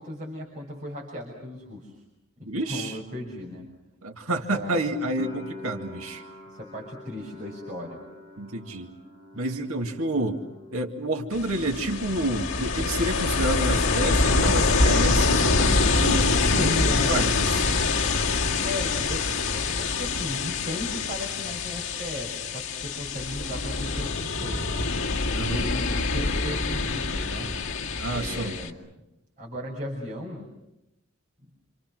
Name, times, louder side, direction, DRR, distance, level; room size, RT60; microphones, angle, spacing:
voice 1, 0.0-1.9 2.4-3.7 4.5-4.8 6.5-8.0 11.7-11.8 16.5-17.4 18.6-24.9 25.4-27.5 28.1-28.7 29.4-30.5, left 1 dB, 35° right, -3 dB, 6.3 m, -36 dB
voice 2, 2.5-3.0 4.0-6.2 8.4-8.9 9.4-10.4 10.7-17.7 25.3-25.7 28.0-28.6, right 1 dB, 80° right, 3 dB, 2.2 m, -29 dB
sound 1, 5.2-12.0 12.2-13.1, left 2 dB, 25° left, 5.8 m, -45 dB
Ocean, 11.3-28.7, left 3 dB, 60° left, 2.2 m, -25 dB
28.5 x 27.5 x 6.2 m, 0.89 s
head